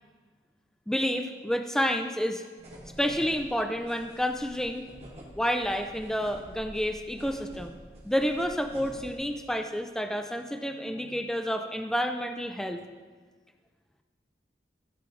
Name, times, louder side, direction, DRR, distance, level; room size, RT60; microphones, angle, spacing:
voice 1, 0.9-2.5 3.0-4.9 5.4-7.8 8.0-12.8, equal, 5° left, 5 dB, 0.3 m, -29 dB
sound 1, 2.6-9.2, equal, 35° right, 1.7 m, -48 dB
14.0 x 4.8 x 3.8 m, 1.5 s
head